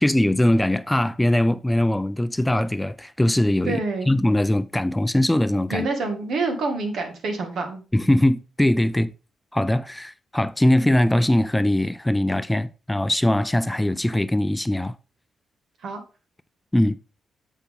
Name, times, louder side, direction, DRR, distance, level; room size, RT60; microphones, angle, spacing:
voice 1, 0.0-3.8 4.1-5.9 7.9-9.1 9.5-14.9 16.7-17.0, left 1 dB, 10° left, 0.4 m, -21 dB
voice 2, 3.7-4.1 5.7-7.8 15.8-16.0, right 3 dB, 75° right, 1.7 m, -27 dB
7.1 x 5.8 x 3.5 m
cardioid pair, 65°, 0 cm